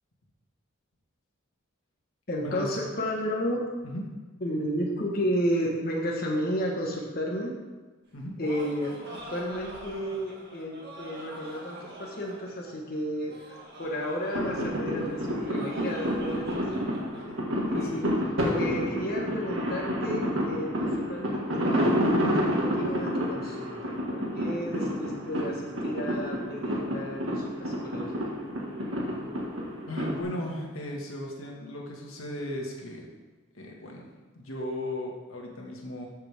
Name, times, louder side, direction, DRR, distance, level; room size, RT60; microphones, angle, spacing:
voice 1, 2.3-3.6 4.4-7.5 8.4-16.8 17.7-18.1 18.4-28.0, equal, 45° left, -2 dB, 1.4 m, -32 dB
Laughter, 8.1-17.2, right 1 dB, 55° right, 2.1 m, -45 dB
sound 1, 14.3-30.2, equal, 70° right, 1.9 m, -29 dB
voice 2, 29.9-33.1 33.5-34.1 34.4-36.1, left 1 dB, 85° left, -1 dB, 1.9 m, -36 dB
13.5 x 6.8 x 3.6 m, 1.3 s
head